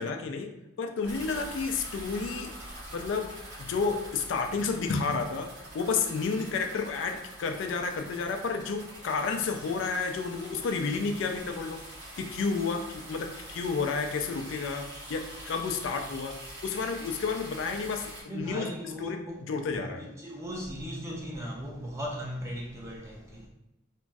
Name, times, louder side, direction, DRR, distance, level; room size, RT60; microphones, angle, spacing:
voice 1, 0.0-2.5 2.9-5.5 5.7-11.8 12.2-20.0, left 4 dB, 70° left, 0.3 m, -31 dB
sound 1, 1.0-18.2, right 1 dB, 55° right, 0.9 m, -45 dB
voice 2, 18.3-19.4 19.7-23.5, equal, 15° right, 0.5 m, -38 dB
2.9 x 2.5 x 2.2 m
head